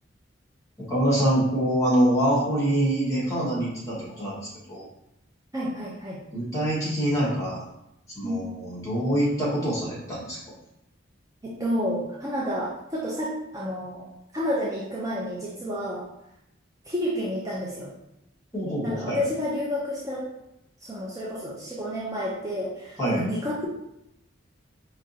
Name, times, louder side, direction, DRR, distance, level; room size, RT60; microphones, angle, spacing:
voice 1, 0.8-4.4 4.7-4.8 6.3-7.6 8.1-10.5 18.5-19.2 23.0-23.2, right 1 dB, 15° left, -6 dB, 1.6 m, -25 dB
voice 2, 5.5-6.2 8.2-8.4 11.4-14.1 14.3-16.1 16.9-17.9 18.8-20.3 20.8-23.7, equal, 20° right, -6 dB, 0.6 m, -30 dB
4.9 x 3.1 x 2.8 m, 0.82 s
head